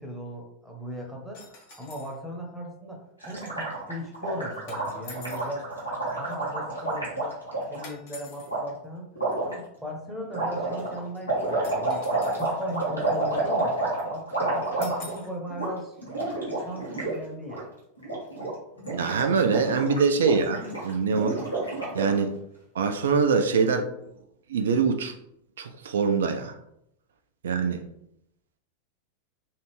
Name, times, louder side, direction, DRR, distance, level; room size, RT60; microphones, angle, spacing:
voice 1, 0.0-5.7 6.1-7.4 7.7-9.1 9.4-12.0 12.3-15.9 16.4-17.7, equal, ahead, 0 dB, 0.9 m, -38 dB
sound 1, 1.3-2.2 4.7-5.5 7.8-8.5 11.6-12.6 14.8-15.3, left 3 dB, 50° left, 1.0 m, -45 dB
Gurgling, 3.2-7.8 8.5-8.6 9.1-9.5 10.3-15.2 15.5-15.7 16.0-17.1 17.4-17.6 18.0-18.5 18.8-22.2, right 2 dB, 80° left, 1.1 m, -29 dB
voice 2, 18.9-21.4 21.9-22.3 22.7-23.9 24.5-25.2 25.6-26.6 27.4-27.8, right 5 dB, 60° right, 6 dB, 0.3 m, -24 dB
3.2 x 2.4 x 3.1 m, 0.78 s
figure-of-eight pair, 90°, 0 cm